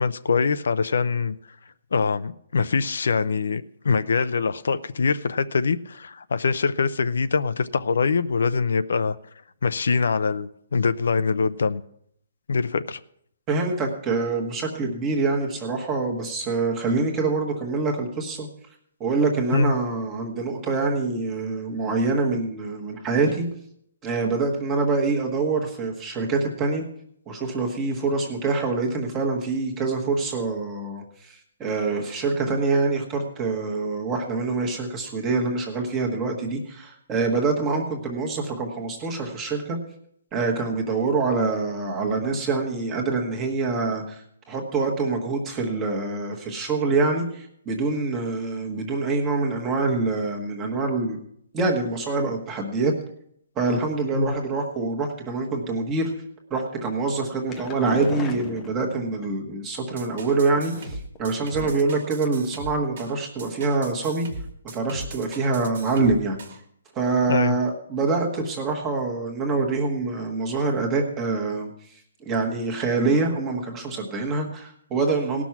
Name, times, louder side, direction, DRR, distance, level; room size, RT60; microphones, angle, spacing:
voice 1, 0.0-1.4 1.9-9.2 9.6-11.8 12.5-13.0 19.5-19.7 54.1-54.3 67.3-67.6, left 5 dB, 70° left, 0.6 m, -23 dB
voice 2, 13.5-18.5 19.0-23.5 24.0-26.8 27.3-39.8 40.3-51.2 51.5-52.9 53.6-56.1 56.5-64.3 64.6-66.4 66.9-71.7 72.2-75.4, right 3 dB, 10° right, 1.3 m, -25 dB
sound 1, 57.2-59.3 60.2-61.2 61.6-62.0 62.3-62.4 62.7-62.8, left 5 dB, 10° left, 0.6 m, -37 dB
sound 2, 60.0-66.6, right 2 dB, 40° right, 1.5 m, -39 dB
18.5 x 6.2 x 5.9 m
hypercardioid pair, 180°, 0 cm